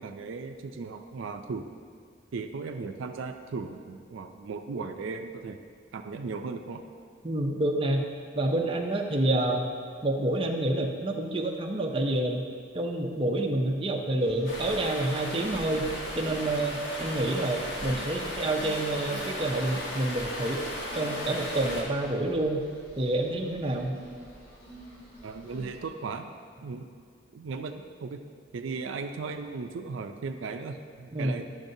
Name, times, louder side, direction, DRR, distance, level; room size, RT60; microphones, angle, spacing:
voice 1, 0.0-1.7 2.3-5.6 5.9-6.8 25.2-26.3 26.6-26.9 27.3-28.2 28.5-31.5, right 4 dB, 80° right, 6 dB, 0.4 m, -36 dB
voice 2, 7.2-8.0 8.3-9.7 10.0-12.5 12.7-15.9 16.1-20.6 20.9-22.6 23.0-24.0 31.1-31.4, right 1 dB, 25° right, 1 dB, 0.5 m, -28 dB
sound 1, 14.2-25.9, right 1 dB, 50° left, 1.8 m, -49 dB
Stream, 14.5-21.8, left 1 dB, 65° left, 1.4 m, -36 dB
10.5 x 6.5 x 2.7 m, 2.2 s
head